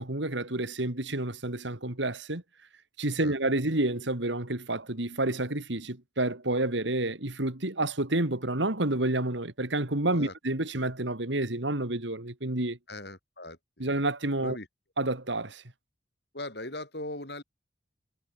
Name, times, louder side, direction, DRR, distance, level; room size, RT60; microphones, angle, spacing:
voice 1, 0.0-2.4 3.0-12.8 13.8-14.6 15.0-15.6, right 2 dB, 75° right, 2.7 m, -29 dB
voice 2, 12.9-13.6 14.4-14.7 16.3-17.4, left 1 dB, 60° left, 7.7 m, -39 dB
head